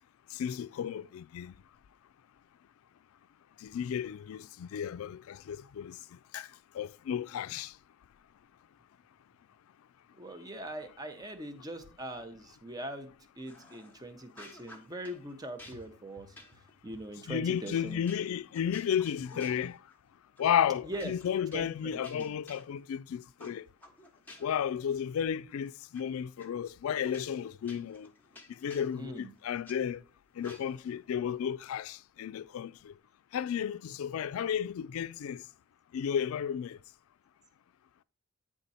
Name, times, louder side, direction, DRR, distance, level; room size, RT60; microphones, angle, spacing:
voice 1, 0.3-1.5 3.6-6.0 6.3-6.5 6.7-7.7 17.3-19.8 20.4-23.7 24.4-28.1 28.6-30.0 30.4-32.9 33.3-35.4 35.9-36.8, left 8 dB, 70° left, 0.3 m, -33 dB
voice 2, 10.2-18.0 20.8-21.1 21.5-22.4 28.9-29.3, right 1 dB, 15° right, 0.7 m, -42 dB
sound 1, 13.4-14.0 14.3-15.2 15.6-20.0 20.4-20.5 20.9-23.0 23.4-24.7 25.0-26.0 26.4-26.5 27.0-29.8 30.4-30.9, left 1 dB, 10° left, 1.0 m, -54 dB
9.3 x 3.6 x 4.1 m
head